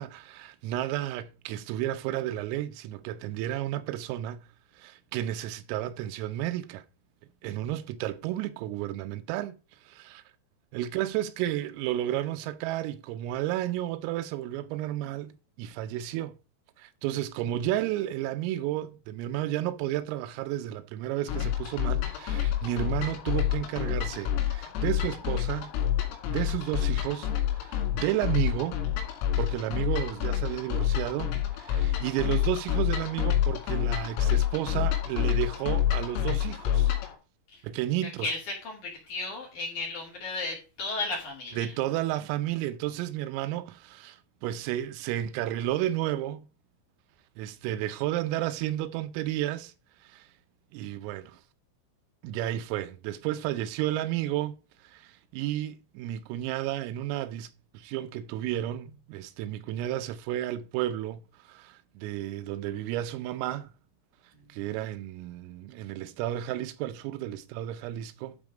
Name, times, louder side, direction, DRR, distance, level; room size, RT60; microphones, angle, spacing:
voice 1, 0.0-6.9 7.4-10.2 10.7-16.4 16.8-25.7 26.3-28.9 29.4-36.9 37.6-38.4 41.5-46.5 47.4-49.7 50.0-50.3 50.7-51.4 52.2-63.7 64.5-68.4, right 13 dB, 85° right, 3.2 m, -32 dB
voice 2, 7.4-7.7 37.5-37.6 38.2-41.7 64.3-64.5, left 3 dB, 45° left, 3.4 m, -35 dB
sound 1, 21.3-37.2, left 11 dB, 85° left, 4.7 m, -28 dB
12.0 x 4.5 x 4.9 m
omnidirectional pair, 6.0 m